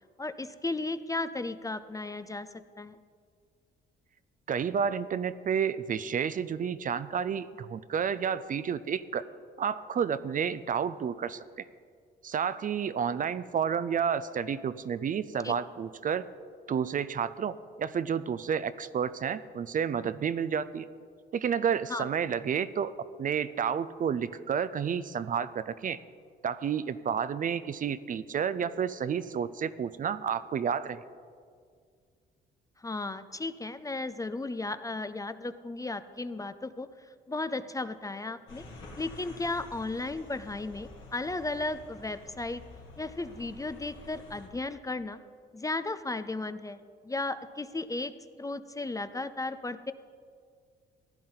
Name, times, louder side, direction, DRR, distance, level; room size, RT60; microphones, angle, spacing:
voice 1, 0.2-2.5 2.8-3.0 15.4-15.5 21.9-22.1 32.8-38.6 39.0-42.6 43.0-45.2 45.5-48.1 48.4-49.9, left 2 dB, 15° left, 12 dB, 0.4 m, -35 dB
voice 2, 4.5-9.2 9.6-11.4 12.2-16.2 16.7-20.9 21.3-26.0 26.4-31.0, right 7 dB, 45° right, 14 dB, 0.4 m, -30 dB
sound 1, 38.5-44.5, left 2 dB, 75° left, 2.5 m, -49 dB
15.5 x 10.5 x 3.9 m, 2.1 s
cardioid pair, 90°, 20 cm